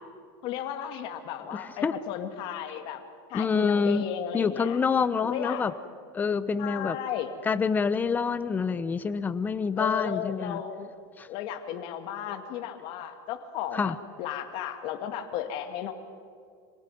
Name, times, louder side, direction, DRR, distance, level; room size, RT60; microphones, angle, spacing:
voice 1, 0.4-3.0 3.3-4.8 5.2-5.6 6.6-7.3 9.8-10.9 11.3-15.9, left 9 dB, 50° left, 7 dB, 2.2 m, -34 dB
voice 2, 1.5-1.9 3.3-4.1 4.3-5.7 6.1-7.0 7.4-10.6 11.2-11.3 13.7-14.0, left 5 dB, 15° left, 13 dB, 0.9 m, -27 dB
26.5 x 17.5 x 9.4 m, 2.3 s
supercardioid pair, 145°, 11 cm